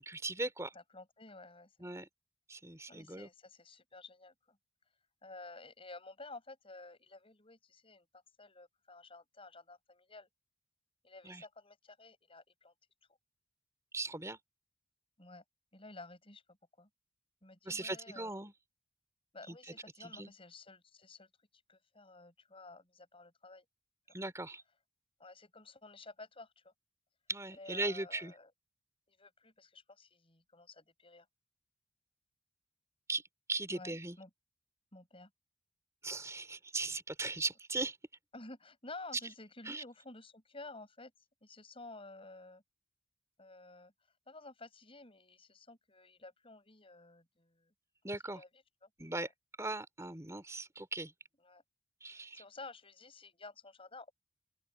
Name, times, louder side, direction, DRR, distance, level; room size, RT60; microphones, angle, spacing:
voice 1, 0.0-0.7 1.8-2.1 2.5-3.3 11.2-11.4 13.9-14.4 17.7-18.5 19.5-19.6 20.0-20.3 24.1-24.6 27.3-28.3 33.1-33.2 33.5-34.2 36.0-38.0 39.7-39.8 48.0-48.4 49.0-49.3 49.6-51.1 52.0-52.4, right 2 dB, 15° right, 4.0 m, -38 dB
voice 2, 0.7-2.1 2.9-4.6 5.2-10.3 11.0-12.7 15.2-15.4 15.7-16.4 16.8-16.9 17.4-18.3 19.3-21.3 21.7-23.7 25.2-26.7 27.5-28.5 29.1-31.3 33.7-34.3 34.9-35.3 38.3-41.1 41.4-42.6 43.4-43.9 44.3-47.7 48.2-48.5 48.8-48.9 49.2-49.3 51.4-51.6 52.1-54.1, left 3 dB, 25° left, 7.2 m, -52 dB
open air
head